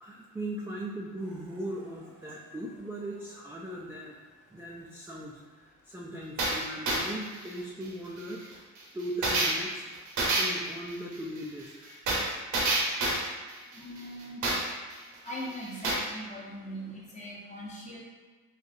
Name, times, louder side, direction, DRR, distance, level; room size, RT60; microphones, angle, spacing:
voice 1, 0.0-4.1 4.5-8.4 8.9-9.8 10.3-11.9, right 1 dB, 10° right, -4 dB, 0.3 m, -39 dB
sound 1, 1.3-1.4 1.8-1.9 6.4-14.9 15.3-15.4 15.6-16.0, right 2 dB, 75° right, 0.8 m, -28 dB
voice 2, 13.7-14.5 15.2-18.0, equal, 25° left, -5 dB, 0.9 m, -40 dB
3.8 x 2.2 x 2.6 m, 1.4 s
cardioid pair, 90°, 30 cm